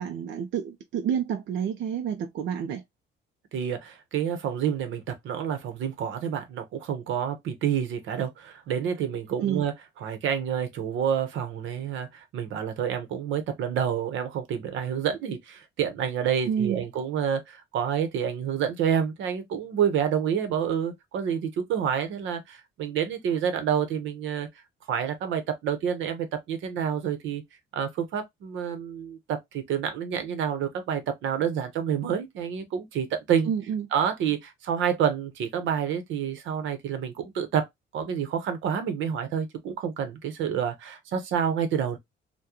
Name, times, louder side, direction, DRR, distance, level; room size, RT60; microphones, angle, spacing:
voice 1, 0.0-2.8 9.4-9.6 16.5-16.8 33.5-33.9, right 8 dB, 70° right, 0.6 m, -29 dB
voice 2, 3.5-9.7 10.0-24.5 24.9-27.4 27.7-33.5 33.9-37.7 37.9-42.0, right 8 dB, 85° right, 0.9 m, -28 dB
3.6 x 2.2 x 2.8 m
cardioid pair, 150°, 19 cm